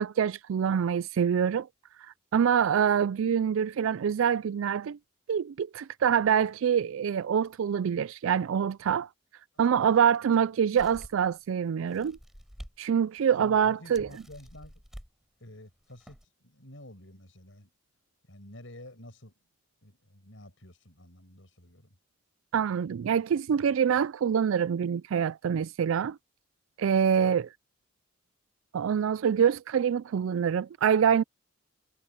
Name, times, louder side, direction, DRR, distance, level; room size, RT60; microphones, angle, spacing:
voice 1, 0.0-1.7 2.3-5.0 5.3-9.1 9.6-12.2 12.8-14.1 22.5-26.2 26.8-27.5 28.7-31.2, right 7 dB, 75° right, 0.3 m, -25 dB
sound 1, 10.8-11.3 11.9-12.8 13.2-13.3 13.9-15.1 15.8-16.3, equal, ahead, 6.5 m, -48 dB
voice 2, 13.4-14.7 15.4-17.7 18.3-19.3 19.8-22.0, left 1 dB, 65° left, 6.6 m, -50 dB
head